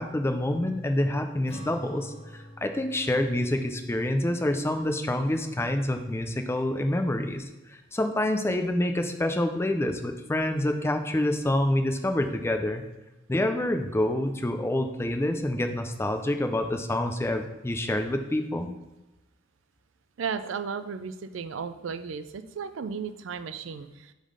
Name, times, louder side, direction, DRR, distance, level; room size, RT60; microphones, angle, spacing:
voice 1, 0.0-7.4 7.7-12.8 13.3-18.7, left 1 dB, 15° left, 6 dB, 0.4 m, -27 dB
Acoustic guitar / Strum, 1.5-6.2, equal, 35° left, 1.6 m, -48 dB
voice 2, 20.2-24.1, right 6 dB, 80° right, 10 dB, 0.4 m, -34 dB
5.2 x 3.8 x 4.9 m, 1.1 s
head